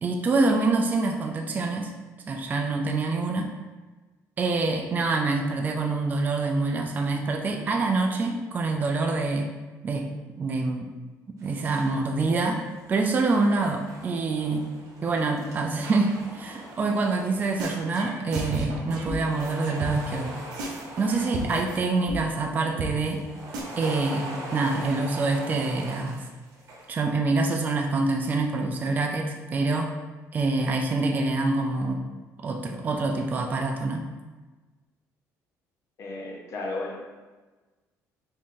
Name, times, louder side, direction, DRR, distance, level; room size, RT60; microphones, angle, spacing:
voice 1, 0.0-1.9 2.3-3.5 4.4-9.5 9.8-10.1 10.4-10.9 11.4-12.6 12.9-14.7 15.0-20.4 21.0-23.2 23.8-26.2 26.9-29.9 30.3-32.0 32.4-34.0, right 3 dB, 25° right, 2 dB, 0.3 m, -26 dB
sound 1, 11.4-12.0 12.3-18.6 18.8-22.3 23.0-27.0, right 1 dB, 50° right, 0.9 m, -42 dB
sound 2, 17.6-20.2 20.5-21.8 22.1-22.2 22.5-22.6 22.8-22.9 23.2-23.3 23.5-23.6, right 3 dB, 85° right, 0.7 m, -33 dB
voice 2, 36.0-37.2, left 2 dB, 50° left, 0 dB, 0.8 m, -34 dB
3.5 x 2.5 x 3.6 m, 1.3 s
cardioid pair, 115°, 6 cm